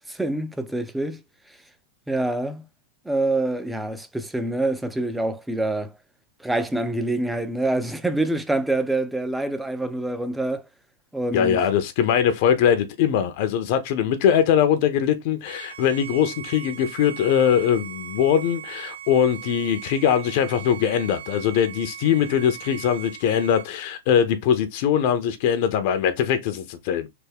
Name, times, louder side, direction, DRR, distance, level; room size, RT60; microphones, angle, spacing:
voice 1, 0.1-1.2 2.1-2.7 3.1-5.9 6.4-10.6 11.1-11.6, right 2 dB, 5° right, 0.4 m, -26 dB
voice 2, 11.3-27.1, left 8 dB, 55° left, 0.5 m, -21 dB
Bowed string instrument, 15.4-23.7, right 10 dB, 80° right, 0.6 m, -39 dB
3.4 x 2.1 x 3.4 m
hypercardioid pair, 130°, 0 cm